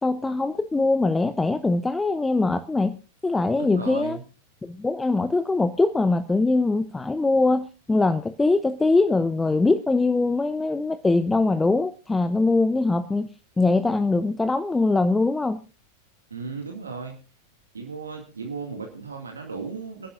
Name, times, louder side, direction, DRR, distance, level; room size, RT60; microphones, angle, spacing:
voice 1, 0.0-3.0 3.2-4.2 4.6-13.3 13.6-15.6, left 3 dB, 10° left, 13 dB, 0.7 m, -22 dB
voice 2, 3.6-4.2 16.3-17.2 17.7-20.1, right 5 dB, 75° right, 2 dB, 2.2 m, -35 dB
27.0 x 11.0 x 2.6 m, 0.32 s
figure-of-eight pair, 90°, 0 cm